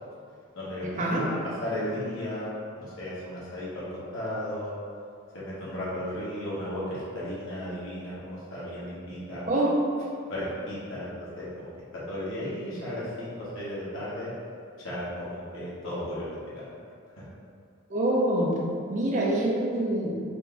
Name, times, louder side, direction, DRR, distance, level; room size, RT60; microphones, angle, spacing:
voice 1, 0.5-4.7 5.3-9.4 10.3-14.3 14.8-16.6 17.2-17.3, left 1 dB, 70° left, -9 dB, 1.2 m, -35 dB
voice 2, 17.9-18.5 18.9-20.1, right 1 dB, 35° right, -3 dB, 0.6 m, -25 dB
4.3 x 2.6 x 3.4 m, 2.3 s
head